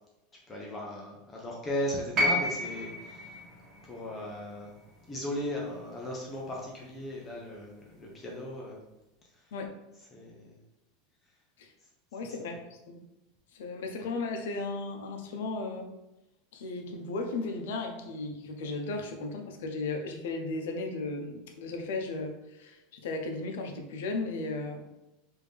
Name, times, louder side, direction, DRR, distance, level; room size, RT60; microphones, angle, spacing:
voice 1, 0.5-3.4 3.8-4.8 5.1-8.8 9.3-9.5 10.1-10.6 12.2-12.4, equal, 15° left, -2 dB, 0.5 m, -37 dB
sound 1, 2.2-6.3 7.5-7.6, equal, 20° right, 0.7 m, -32 dB
voice 2, 12.1-12.6 12.9-13.0 13.5-15.9 16.5-24.8, left 3 dB, 75° left, 4 dB, 0.6 m, -35 dB
3.3 x 2.6 x 3.4 m, 0.93 s
supercardioid pair, 165°, 0 cm